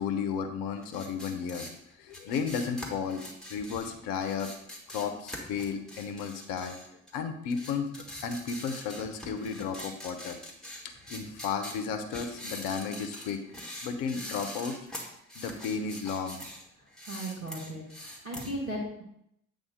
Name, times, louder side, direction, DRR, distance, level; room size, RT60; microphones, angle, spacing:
voice 1, 0.0-1.7 2.0-3.2 3.5-4.5 4.9-6.8 7.1-7.9 8.2-10.4 10.8-13.4 13.8-14.8 15.4-16.4, left 6 dB, 55° left, 7 dB, 0.9 m, -33 dB
sound 1, 0.8-7.2 7.5-16.6 16.9-18.5, left 1 dB, ahead, 1.9 m, -43 dB
voice 2, 17.1-19.0, right 1 dB, 90° right, -4 dB, 1.6 m, -36 dB
8.5 x 3.8 x 5.1 m, 0.78 s
figure-of-eight pair, 50°, 40 cm